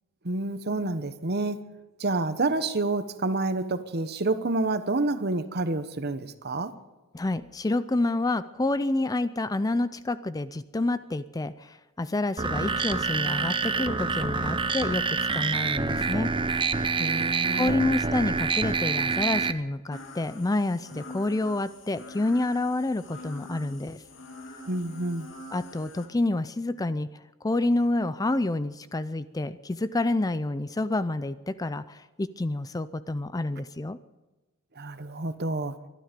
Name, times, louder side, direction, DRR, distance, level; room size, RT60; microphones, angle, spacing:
voice 1, 0.2-1.6 2.0-6.7 16.9-17.8 24.7-25.3 34.8-35.7, right 2 dB, 50° right, 11 dB, 1.1 m, -28 dB
voice 2, 7.1-16.8 17.6-24.0 25.5-34.0, left 2 dB, 15° left, 14 dB, 0.4 m, -28 dB
sound 1, 12.4-19.5, right 4 dB, 25° right, 0.7 m, -27 dB
sound 2, 19.9-26.1, left 2 dB, 60° left, 2.5 m, -45 dB
22.5 x 12.5 x 5.2 m, 1.1 s
head